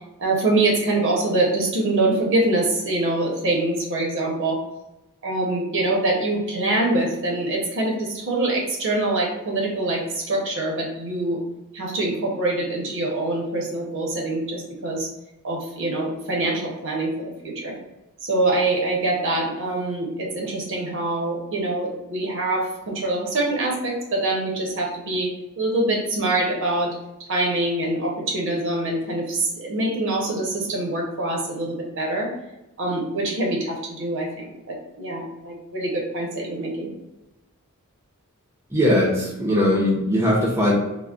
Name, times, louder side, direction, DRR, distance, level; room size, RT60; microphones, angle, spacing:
voice 1, 0.2-4.6 5.2-11.4 11.7-15.1 15.4-17.1 17.4-17.7 18.2-25.3 25.6-26.9 27.3-32.3 32.8-36.9, right 2 dB, 60° right, -2 dB, 0.7 m, -24 dB
voice 2, 38.7-40.7, left 1 dB, 10° right, -5 dB, 0.5 m, -20 dB
3.6 x 2.1 x 2.3 m, 0.96 s
head